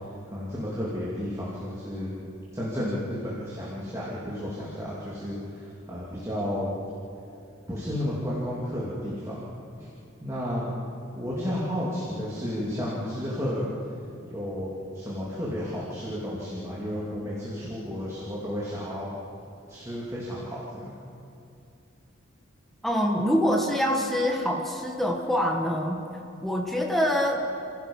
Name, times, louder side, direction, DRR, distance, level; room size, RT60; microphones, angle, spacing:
voice 1, 0.3-2.1 2.5-6.7 7.7-9.5 9.8-9.9 10.2-10.7 11.1-13.7 14.2-19.1 19.7-20.9, equal, 15° right, -7 dB, 2.9 m, -32 dB
voice 2, 22.8-26.0 26.4-27.4, equal, ahead, 0 dB, 1.7 m, -25 dB
29.5 x 16.0 x 5.6 m, 2.6 s
head